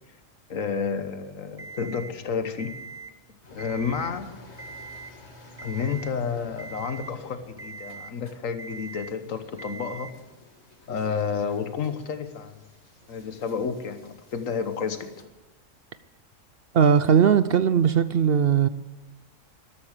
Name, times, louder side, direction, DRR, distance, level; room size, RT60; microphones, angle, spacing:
voice 1, 0.5-2.8 3.5-4.3 5.6-10.1 10.9-12.6 13.1-15.1, left 6 dB, 80° left, 9 dB, 1.6 m, -30 dB
Alarm, 1.6-2.1 2.6-3.1 3.5-4.1 4.6-5.1 5.6-6.1 6.6-7.1 7.6-8.1 8.6-9.1 9.6-10.1, right 4 dB, 15° right, 0.5 m, -41 dB
sound 1, 3.4-15.2, left 2 dB, 55° left, 2.4 m, -51 dB
voice 2, 16.7-18.7, right 7 dB, 60° right, 13 dB, 0.7 m, -19 dB
13.0 x 12.5 x 6.6 m, 1.1 s
omnidirectional pair, 1.3 m